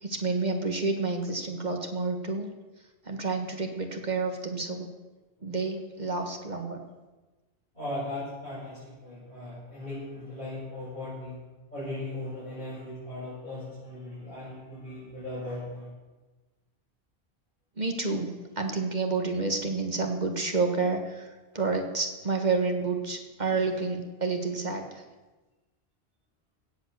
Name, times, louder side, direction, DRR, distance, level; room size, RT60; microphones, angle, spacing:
voice 1, 0.0-2.5 3.0-4.9 5.4-6.8 17.8-18.3 18.5-21.3 21.5-25.0, right 4 dB, 45° right, 4 dB, 1.6 m, -29 dB
voice 2, 7.7-11.3 11.7-15.9, left 1 dB, 50° left, -12 dB, 6.3 m, -38 dB
17.0 x 7.4 x 6.8 m, 1.2 s
omnidirectional pair, 1.1 m